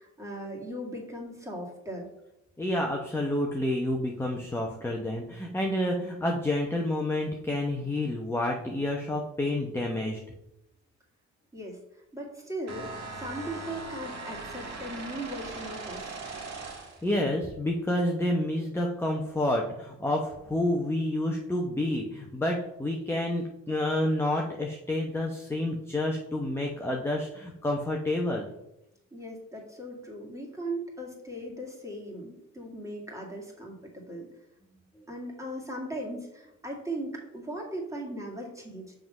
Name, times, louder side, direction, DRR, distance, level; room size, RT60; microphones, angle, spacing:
voice 1, 0.0-2.1 11.5-16.1 29.1-34.3 35.1-38.9, right 1 dB, 10° right, -1 dB, 2.1 m, -38 dB
voice 2, 2.6-10.2 17.0-28.4 35.0-35.1, left 1 dB, 10° left, 0 dB, 0.8 m, -29 dB
sound 1, 12.7-17.1, right 3 dB, 60° right, 1.8 m, -39 dB
5.7 x 3.8 x 5.3 m, 0.86 s
cardioid pair, 90°, 30 cm